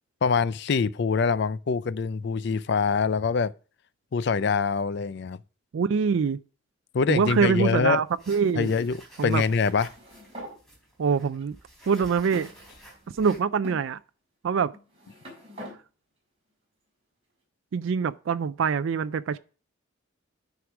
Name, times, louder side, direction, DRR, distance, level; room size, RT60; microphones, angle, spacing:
voice 1, 0.2-3.5 4.1-5.4 6.9-8.0 8.6-9.0 9.2-9.9, left 5 dB, 55° left, 0.4 m, -24 dB
voice 2, 5.7-6.4 7.1-8.7 9.2-9.4 11.0-11.6 11.9-12.5 13.2-14.0 14.4-14.7 17.7-19.4, right 6 dB, 70° right, 0.4 m, -24 dB
sound 1, 8.1-13.4, right 1 dB, ahead, 3.7 m, -50 dB
Sliding Wooden Chair, 9.7-10.6 11.4-11.5 12.3-13.1 13.6-13.8 14.7-15.8, equal, 30° right, 4.1 m, -43 dB
9.5 x 4.8 x 5.9 m
head